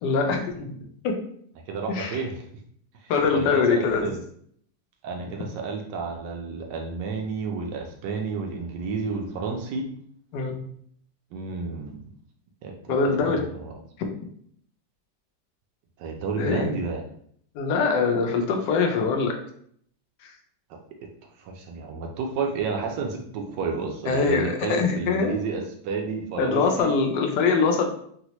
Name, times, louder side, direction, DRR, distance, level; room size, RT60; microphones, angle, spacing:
voice 1, 0.0-0.8 1.0-1.1 1.9-2.2 3.1-4.1 10.3-10.6 12.9-13.4 14.0-14.1 16.4-16.8 17.5-19.4 20.2-20.3 24.1-25.4 26.4-27.8, left 4 dB, 75° left, 3 dB, 1.2 m, -23 dB
voice 2, 1.7-2.4 3.0-4.2 5.0-9.8 11.3-12.0 12.6-12.9 13.2-13.7 16.0-17.0 21.4-26.9, right 4 dB, 80° right, 2 dB, 1.2 m, -31 dB
4.0 x 2.0 x 2.9 m, 0.64 s
omnidirectional pair, 1.9 m